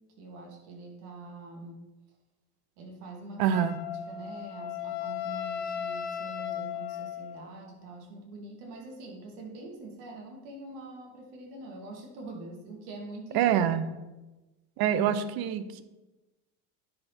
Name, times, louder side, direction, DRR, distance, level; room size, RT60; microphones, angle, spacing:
voice 1, 0.2-1.8 2.8-3.4 4.1-13.5, right 2 dB, 75° right, 0 dB, 2.5 m, -44 dB
voice 2, 3.4-3.8 13.3-13.9 14.8-15.8, right 9 dB, 50° right, 13 dB, 0.8 m, -25 dB
Wind instrument woodwind instrument, 3.5-7.5, left 9 dB, 50° left, 1.2 m, -36 dB
10.0 x 4.5 x 4.5 m, 1.1 s
supercardioid pair, 95°, 48 cm